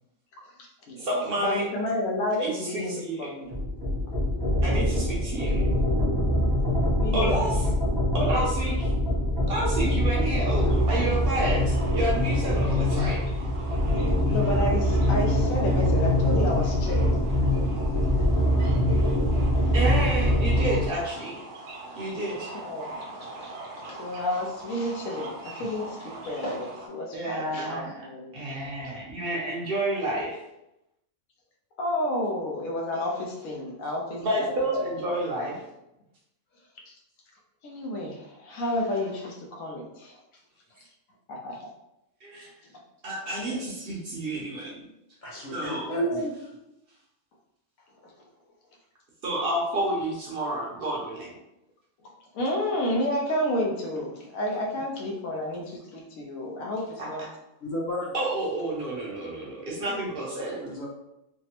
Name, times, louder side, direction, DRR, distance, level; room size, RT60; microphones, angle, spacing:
voice 1, 0.4-1.1 1.4-3.5 6.9-7.5 14.3-17.2 22.6-29.0 31.8-34.7 36.9-37.0 37.6-40.2 41.3-41.7 43.5-43.6 45.9-46.3 48.0-48.1 52.3-57.2, left 1 dB, 90° left, -1 dB, 1.1 m, -31 dB
voice 2, 1.0-1.7 2.3-3.3 4.6-5.6 7.1-7.7 8.1-8.9 9.5-13.2 19.7-21.4 22.0-22.5 27.1-28.1 28.3-30.4 34.2-35.6 42.2-42.5 43.0-44.8 45.5-45.9 49.2-51.3 58.1-60.7, right 1 dB, 55° right, -4 dB, 0.8 m, -30 dB
sound 1, 3.5-20.9, left 1 dB, 25° right, 0.6 m, -24 dB
sound 2, 10.5-26.9, right 2 dB, 80° right, 1.1 m, -42 dB
voice 3, 45.2-46.2 57.6-58.1 60.6-60.9, left 1 dB, 45° left, -4 dB, 0.8 m, -34 dB
3.4 x 2.0 x 2.8 m, 0.88 s
omnidirectional pair, 1.4 m